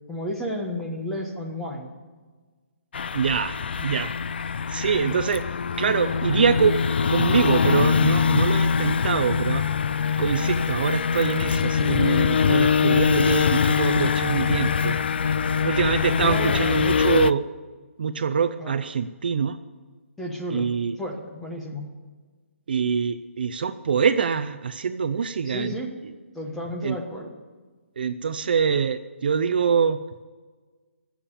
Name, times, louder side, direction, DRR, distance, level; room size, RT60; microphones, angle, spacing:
voice 1, 0.1-1.9 16.2-16.6 18.6-18.7 20.2-20.7 21.0-21.8 25.4-25.9 26.3-27.3, equal, 5° left, -1 dB, 1.2 m, -32 dB
sound 1, 2.9-17.3, left 6 dB, 50° left, 0.4 m, -23 dB
voice 2, 3.1-4.1 4.7-5.4 5.8-6.8 7.1-9.6 10.2-15.0 15.6-17.4 18.0-19.6 20.5-21.0 22.7-25.7 26.8-27.0 28.0-30.0, right 6 dB, 45° right, 11 dB, 0.5 m, -24 dB
19.5 x 7.3 x 7.1 m, 1.4 s
hypercardioid pair, 170°, 7 cm